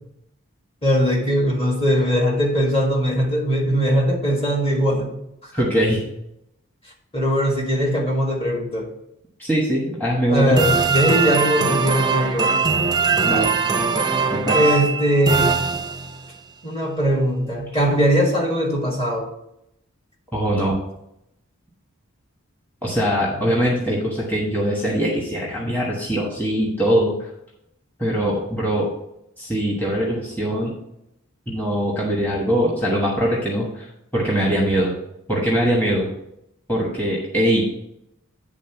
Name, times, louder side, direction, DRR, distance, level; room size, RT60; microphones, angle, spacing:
voice 1, 0.8-5.1 5.4-5.5 7.1-8.9 10.3-12.5 14.5-15.6 16.6-19.3 23.3-23.4, equal, 25° left, -1 dB, 1.5 m, -20 dB
voice 2, 5.5-6.0 9.4-10.6 13.2-13.5 14.3-14.6 20.3-20.8 22.8-27.3 28.0-28.9 29.4-30.7 31.5-33.9 34.1-34.9 35.3-36.1 36.7-37.6, equal, 10° left, -4 dB, 1.3 m, -22 dB
sound 1, 10.6-16.3, right 5 dB, 20° right, 0.5 m, -21 dB
9.7 x 3.7 x 5.8 m, 0.81 s
head